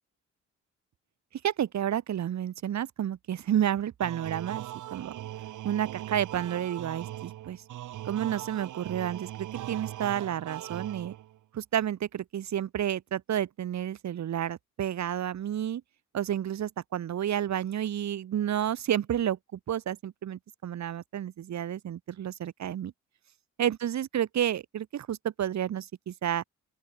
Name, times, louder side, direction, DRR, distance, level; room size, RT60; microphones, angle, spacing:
voice 1, 1.4-4.6 4.9-5.2 5.6-7.6 8.1-11.1 11.5-15.8 16.1-22.9 23.6-26.4, right 10 dB, 65° right, 3.9 m, -30 dB
sound 1, 4.0-11.4, right 13 dB, 80° right, 6.5 m, -40 dB
open air
cardioid pair, 90°, 30 cm